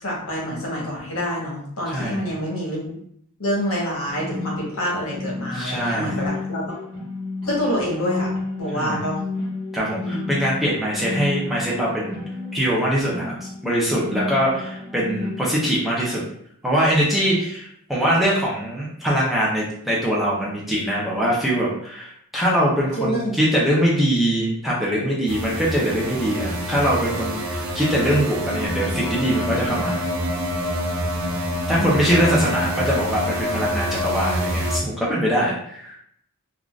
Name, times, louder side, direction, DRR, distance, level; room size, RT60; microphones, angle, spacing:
voice 1, 0.0-3.0 3.4-6.7 7.4-8.3 8.6-9.2 10.0-10.3 23.0-23.3 31.8-32.4, equal, 70° left, -3 dB, 1.1 m, -27 dB
sound 1, 4.0-15.5, left 2 dB, 30° right, 1.0 m, -32 dB
voice 2, 5.5-6.2 8.7-9.0 9.7-12.2 12.5-16.2 16.6-30.0 31.7-35.9, equal, ahead, -6 dB, 0.6 m, -22 dB
sound 2, 25.3-34.8, equal, 65° right, 0.5 m, -26 dB
3.6 x 2.4 x 2.3 m, 0.69 s
head